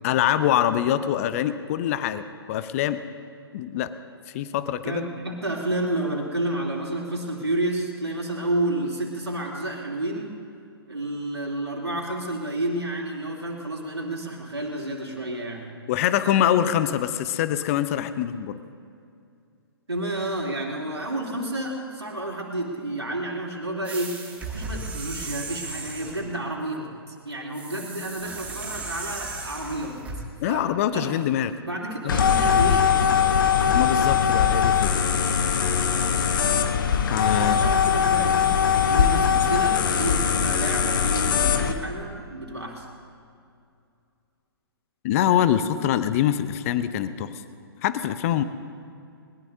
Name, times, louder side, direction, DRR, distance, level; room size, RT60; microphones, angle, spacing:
voice 1, 0.0-3.0 3.5-3.9 4.3-5.0 15.9-18.6 30.4-31.5 32.0-32.2 33.7-34.9 37.1-37.7 45.0-47.3 47.8-48.4, left 11 dB, 35° left, 12 dB, 0.7 m, -24 dB
voice 2, 4.8-10.3 10.9-15.7 19.9-24.2 24.5-30.0 30.4-30.7 30.9-31.1 31.6-33.2 37.3-42.9, right 1 dB, 85° right, -2 dB, 3.0 m, -30 dB
sound 1, 23.8-26.3 27.5-30.2, right 3 dB, 10° right, 2.1 m, -36 dB
sound 2, 32.1-41.7, left 7 dB, 50° left, 1.1 m, -21 dB
21.0 x 21.0 x 2.7 m, 2.4 s
figure-of-eight pair, 125°, 13 cm